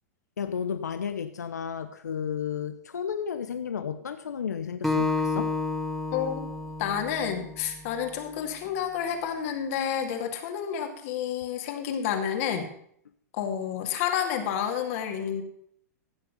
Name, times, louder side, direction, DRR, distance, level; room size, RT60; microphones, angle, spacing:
voice 1, 0.4-5.5, left 7 dB, 85° left, 10 dB, 0.8 m, -33 dB
Acoustic guitar, 4.8-8.1, left 3 dB, ahead, 1.7 m, -30 dB
voice 2, 6.1-6.5 6.8-12.7 13.3-15.4, left 8 dB, 55° left, 4 dB, 2.3 m, -30 dB
15.5 x 7.0 x 5.3 m, 0.66 s
hypercardioid pair, 110°, 9 cm